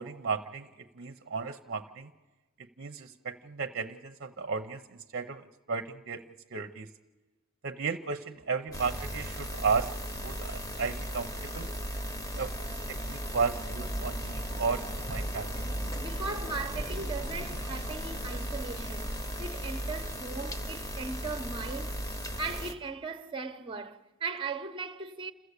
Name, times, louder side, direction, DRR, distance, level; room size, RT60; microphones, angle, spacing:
voice 1, 0.0-2.1 2.8-6.2 6.5-6.9 7.6-9.9 10.2-11.7 12.4-12.5 12.9-14.8 15.1-15.6, right 5 dB, 50° right, 0.7 m, -34 dB
sound 1, 8.7-22.7, equal, 15° left, 1.2 m, -36 dB
voice 2, 16.0-19.1 19.4-22.0 22.4-25.3, right 4 dB, 25° right, 0.9 m, -38 dB
28.0 x 14.5 x 8.2 m
head